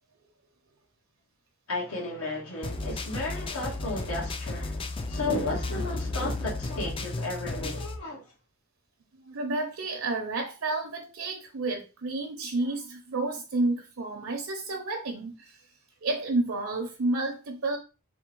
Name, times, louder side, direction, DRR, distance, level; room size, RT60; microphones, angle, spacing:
voice 1, 1.7-8.2, left 2 dB, 80° left, 1.7 m, -33 dB
sound 1, 2.6-8.0, left 2 dB, 25° left, 0.4 m, -34 dB
voice 2, 9.2-15.6 16.0-17.8, right 2 dB, 70° right, 0.7 m, -30 dB
3.5 x 2.2 x 4.4 m
head